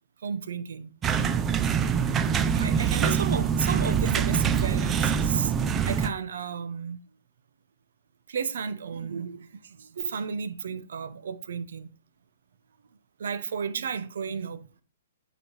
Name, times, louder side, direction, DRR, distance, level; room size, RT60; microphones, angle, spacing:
voice 1, 0.2-0.9 2.5-7.0 8.3-11.9 13.2-14.7, right 6 dB, 75° right, 0.8 m, -33 dB
sound 1, 1.0-6.1, right 7 dB, 15° right, 0.4 m, -24 dB
9.2 x 3.2 x 4.5 m
hypercardioid pair, 160°, 0 cm